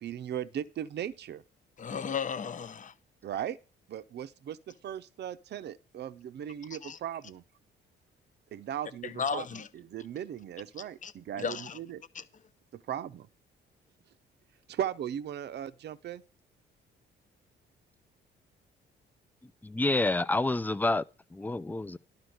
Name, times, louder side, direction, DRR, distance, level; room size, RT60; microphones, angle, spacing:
voice 1, 0.0-1.4 3.2-3.6 3.9-7.4 8.5-12.0 12.7-13.3 14.7-16.2, right 10 dB, 60° right, 0.7 m, -38 dB
voice 2, 1.8-2.9 6.8-7.0 9.0-9.7 11.0-11.1 11.4-11.8 12.1-12.2, left 6 dB, 40° left, 0.9 m, -34 dB
voice 3, 19.6-21.0 21.3-22.0, left 2 dB, 10° left, 0.5 m, -28 dB
11.5 x 4.4 x 7.7 m
cardioid pair, 90°, 20 cm